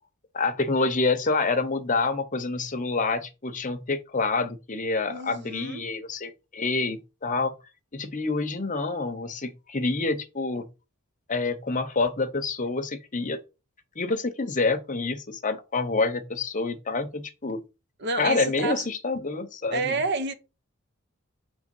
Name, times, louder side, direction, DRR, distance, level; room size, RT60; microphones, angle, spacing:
voice 1, 0.3-7.5 7.9-10.7 11.3-13.4 14.0-17.6 18.2-19.9, left 3 dB, 35° left, 0.8 m, -27 dB
voice 2, 5.1-5.9 18.0-18.9 19.7-20.3, right 3 dB, 50° right, 0.8 m, -29 dB
6.3 x 3.4 x 5.4 m
head